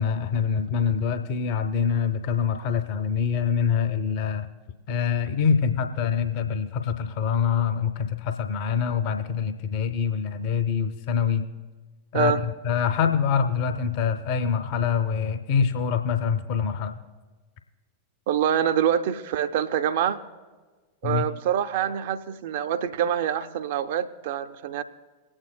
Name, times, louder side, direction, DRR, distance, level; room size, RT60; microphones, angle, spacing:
voice 1, 0.0-4.5 4.9-11.5 12.1-16.9 21.0-21.3, left 7 dB, 45° left, 8 dB, 0.6 m, -25 dB
voice 2, 18.3-20.2 21.0-24.8, right 9 dB, 55° right, 10 dB, 0.5 m, -25 dB
23.0 x 8.8 x 2.2 m, 1.3 s
figure-of-eight pair, 90°, 0 cm